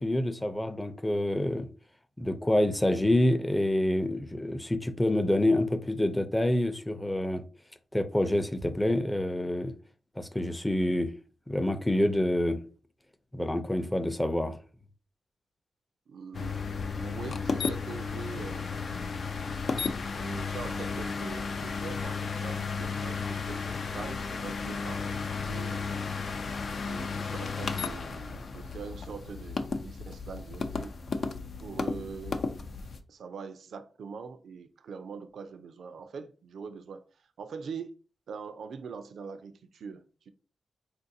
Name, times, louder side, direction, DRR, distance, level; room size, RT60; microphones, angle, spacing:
voice 1, 0.0-1.7 2.2-7.4 7.9-9.7 10.2-11.1 11.5-12.6 13.3-14.6, left 1 dB, 15° left, 0.5 m, -27 dB
voice 2, 16.1-16.7 17.0-18.8 20.1-26.2 26.8-31.0 31.6-32.4 33.1-37.0 37.4-38.0 38.3-40.3, right 5 dB, 80° right, 0.4 m, -43 dB
sound 1, 16.3-33.0, left 4 dB, 65° left, 0.4 m, -34 dB
3.7 x 2.5 x 2.7 m
cardioid pair, 50°, 0 cm